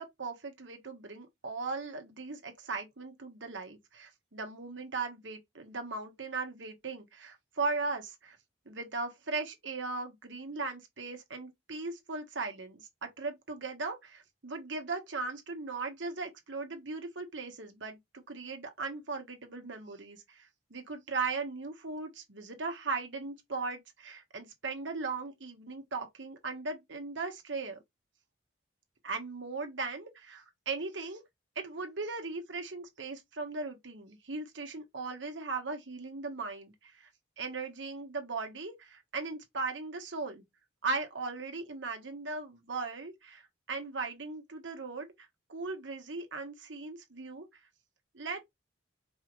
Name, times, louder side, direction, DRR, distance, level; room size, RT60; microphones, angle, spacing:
voice 1, 0.0-8.4 8.7-27.8 29.0-31.2 31.5-37.1 37.4-40.4 40.8-47.5 48.1-48.4, right 3 dB, 80° right, 1.3 m, -38 dB
4.7 x 3.1 x 2.5 m
head